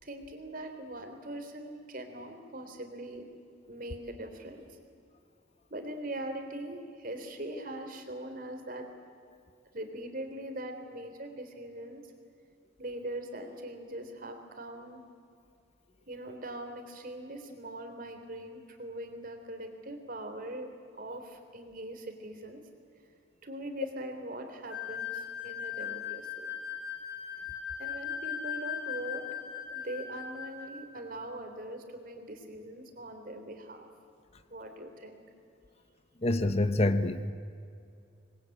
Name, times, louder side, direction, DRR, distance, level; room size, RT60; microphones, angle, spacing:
voice 1, 0.0-3.3 3.7-4.7 5.7-8.9 9.7-12.0 12.8-15.0 16.1-20.7 21.0-22.6 23.4-26.5 27.8-29.2 29.7-33.9 34.5-35.2, right 1 dB, 45° right, 5 dB, 3.4 m, -41 dB
sound 1, 24.7-30.8, left 8 dB, 70° left, 7.9 m, -38 dB
voice 2, 36.2-37.3, left 1 dB, 35° left, 10 dB, 0.9 m, -26 dB
27.0 x 21.0 x 8.6 m, 2.4 s
head